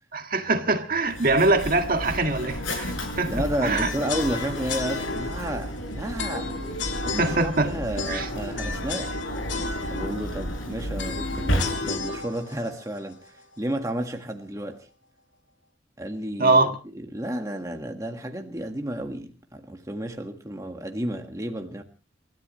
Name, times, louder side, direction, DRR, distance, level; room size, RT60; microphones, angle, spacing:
voice 1, 0.1-3.3 3.6-3.9 7.2-7.8 8.1-8.3 16.4-16.7, right 3 dB, 45° right, 1.7 m, -23 dB
Mechanisms, 1.0-12.2, equal, 85° left, 7.3 m, -32 dB
voice 2, 3.3-6.5 7.0-9.1 9.9-14.9 16.0-16.6 16.9-21.8, right 1 dB, 15° right, 1.6 m, -32 dB
sound 1, 3.8-13.8, left 4 dB, 70° left, 3.1 m, -34 dB
29.0 x 13.5 x 3.1 m
head